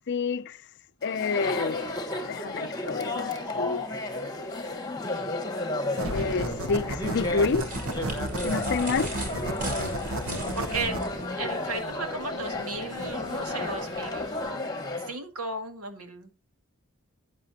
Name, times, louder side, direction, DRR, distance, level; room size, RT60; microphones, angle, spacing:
voice 1, 0.1-0.6 1.0-3.8 6.1-7.7 8.4-9.1, left 4 dB, 50° left, 0.5 m, -29 dB
Chatter, 1.0-15.2, left 2 dB, 20° left, 1.5 m, -33 dB
sound 1, 6.0-14.5, right 1 dB, 70° right, 1.4 m, -34 dB
sound 2, 7.0-11.1, right 2 dB, 40° right, 5.1 m, -40 dB
voice 2, 9.8-11.0 11.4-14.6 15.0-16.3, right 3 dB, 90° right, 2.1 m, -35 dB
13.5 x 9.7 x 2.9 m
head